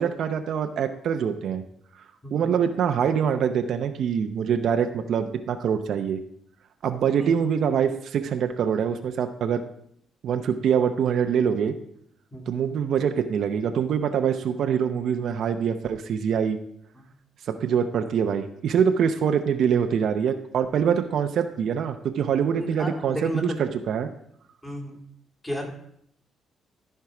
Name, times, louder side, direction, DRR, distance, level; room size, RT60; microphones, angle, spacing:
voice 1, 0.0-1.6 2.3-6.2 6.8-9.6 10.2-11.7 12.5-16.6 17.5-24.1, right 7 dB, 70° right, 7 dB, 0.6 m, -24 dB
voice 2, 22.6-23.6 24.6-25.0 25.4-25.7, equal, 15° left, 0 dB, 2.4 m, -33 dB
13.5 x 4.6 x 4.8 m, 0.71 s
cardioid pair, 90°, 0 cm